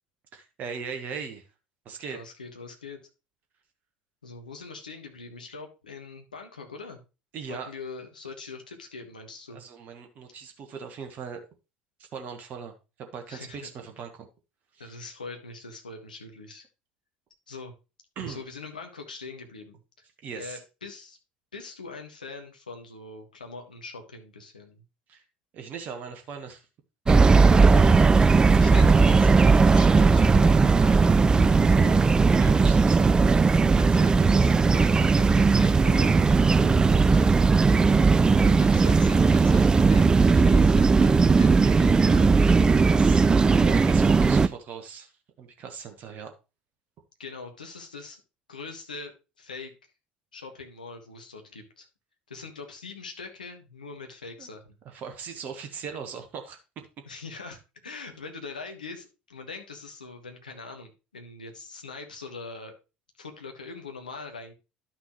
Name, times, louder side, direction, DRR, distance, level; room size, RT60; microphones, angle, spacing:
voice 1, 0.3-1.4 1.8-2.2 7.3-7.7 9.5-11.5 12.0-12.7 13.0-14.3 14.7-14.9 18.2-18.4 20.2-20.6 25.1-25.2 25.5-26.7 27.1-27.2 32.3-33.1 41.6-45.1 45.4-46.3 54.4-54.5 54.8-56.9, right 6 dB, 40° right, 5 dB, 1.3 m, -39 dB
voice 2, 2.1-3.0 4.2-7.0 7.4-9.6 13.3-13.7 14.8-16.6 17.5-17.7 18.2-20.0 20.3-21.2 21.5-24.8 27.5-28.0 28.5-32.0 33.7-37.6 38.4-42.3 47.2-48.2 48.5-49.1 49.4-49.7 50.3-51.9 52.3-54.8 57.0-62.7 63.2-64.5, left 3 dB, 80° left, 4 dB, 1.4 m, -42 dB
sound 1, 27.1-44.5, right 4 dB, 20° right, 0.4 m, -18 dB
11.5 x 6.0 x 3.1 m, 0.29 s
figure-of-eight pair, 65°, 4 cm